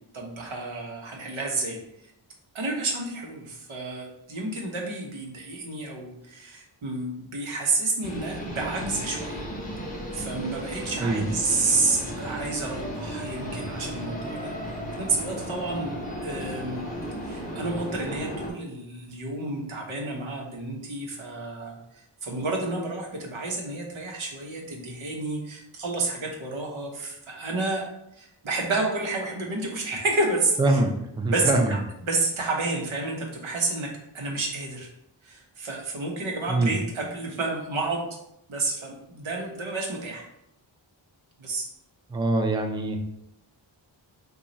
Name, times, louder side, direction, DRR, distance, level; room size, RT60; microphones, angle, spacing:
voice 1, 0.1-2.1 2.5-9.4 10.1-16.0 16.2-16.8 17.2-27.8 28.1-30.8 31.3-33.9 34.1-34.9 35.2-38.1 38.5-40.2 41.4-41.6, right 3 dB, 90° right, 0 dB, 0.9 m, -30 dB
sound 1, 8.0-18.5, equal, 15° left, 1.0 m, -35 dB
voice 2, 30.6-31.8 36.5-36.7 42.1-43.0, right 2 dB, 10° right, 4 dB, 0.3 m, -24 dB
2.9 x 2.3 x 3.8 m, 0.80 s
wide cardioid pair, 80°, 46 cm